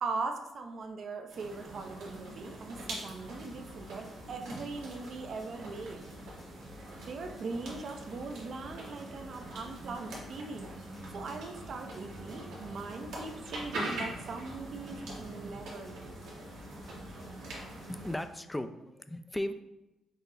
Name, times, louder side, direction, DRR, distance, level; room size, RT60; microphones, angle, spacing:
voice 1, 0.0-6.0 7.1-10.7 11.1-16.2, right 3 dB, 55° right, 5 dB, 0.6 m, -40 dB
sound 1, 1.3-18.2, right 1 dB, 85° right, 1.4 m, -43 dB
sound 2, 2.7-18.4, left 4 dB, 45° left, 0.9 m, -57 dB
voice 2, 17.9-19.5, left 1 dB, 10° left, 9 dB, 0.4 m, -36 dB
5.6 x 2.0 x 4.0 m, 0.96 s
cardioid pair, 75°, 0 cm